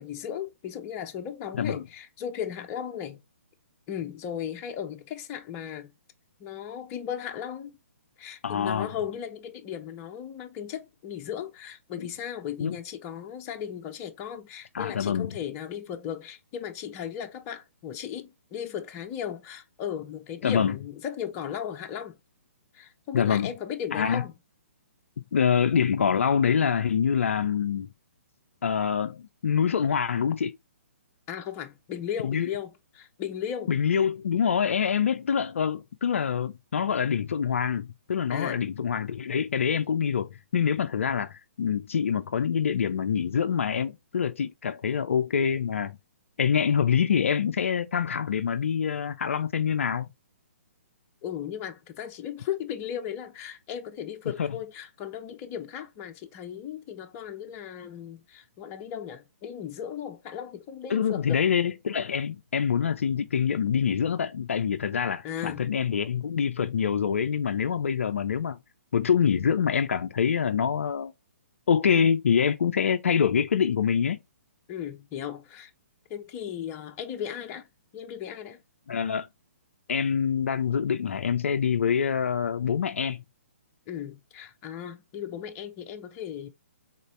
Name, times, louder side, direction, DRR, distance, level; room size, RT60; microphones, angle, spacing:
voice 1, 0.0-3.2 3.9-5.9 6.4-7.8 8.2-22.2 22.7-24.3 31.3-33.8 38.3-38.6 51.2-61.4 65.2-65.6 74.7-75.7 76.1-77.7 77.9-78.6 83.9-86.5, left 9 dB, 25° left, 0.7 m, -36 dB
voice 2, 8.4-8.9 12.0-12.1 12.6-12.8 14.7-15.4 20.4-20.7 23.1-23.5 23.9-24.2 25.3-27.9 28.6-30.6 32.2-32.5 33.7-46.0 46.4-50.1 54.4-54.5 60.9-68.6 68.9-71.1 71.7-74.2 78.9-79.3 79.9-83.2, left 7 dB, 60° left, 0.4 m, -25 dB
3.9 x 3.7 x 3.1 m
figure-of-eight pair, 130°, 8 cm